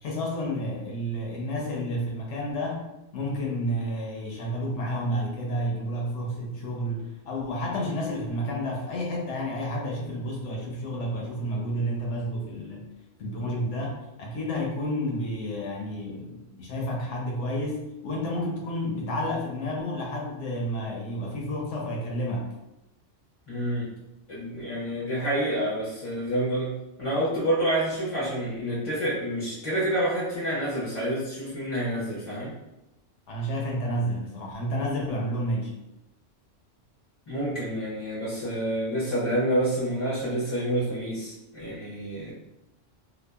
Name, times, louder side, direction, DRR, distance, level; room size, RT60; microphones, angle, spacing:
voice 1, 0.0-2.8 3.1-12.9 13.2-22.5 33.3-35.7, equal, 75° left, -1 dB, 0.9 m, -30 dB
voice 2, 23.5-23.9 24.3-32.5 37.3-42.3, right 1 dB, 35° left, -8 dB, 0.5 m, -28 dB
2.8 x 2.2 x 2.2 m, 0.91 s
omnidirectional pair, 1.3 m